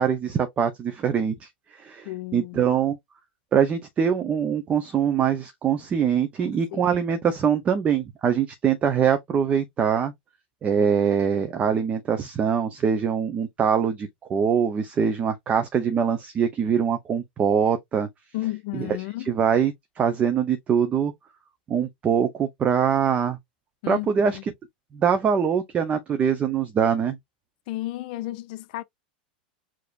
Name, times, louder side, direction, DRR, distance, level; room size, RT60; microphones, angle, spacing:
voice 1, 0.0-3.0 3.5-10.1 10.6-18.1 18.7-18.9 19.3-21.1 21.7-23.4 23.9-24.5 24.9-27.2, right 7 dB, 25° right, 0.7 m, -23 dB
voice 2, 2.0-2.7 6.4-7.0 18.3-19.3 23.8-24.4 27.7-28.8, left 17 dB, 60° left, 0.6 m, -33 dB
4.9 x 2.9 x 2.5 m
hypercardioid pair, 120°, 5 cm